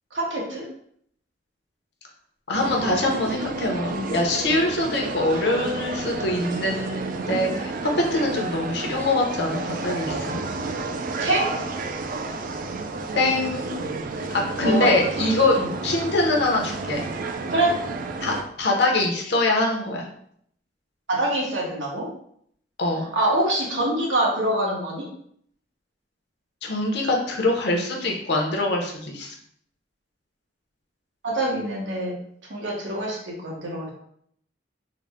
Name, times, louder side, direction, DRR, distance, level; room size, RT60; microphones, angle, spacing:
voice 1, 0.1-0.6 11.2-11.4 14.6-15.7 17.5-17.7 21.1-22.1 23.1-25.1 31.2-32.1 32.5-33.9, right 1 dB, 85° right, -3 dB, 1.2 m, -25 dB
voice 2, 2.5-7.7 8.1-10.4 13.2-13.8 14.3-17.0 18.2-20.0 22.8-23.1 26.6-29.3, left 2 dB, 65° left, 1 dB, 0.8 m, -24 dB
sound 1, 2.5-18.4, right 3 dB, 50° right, 0.4 m, -31 dB
3.8 x 2.1 x 3.5 m, 0.66 s
head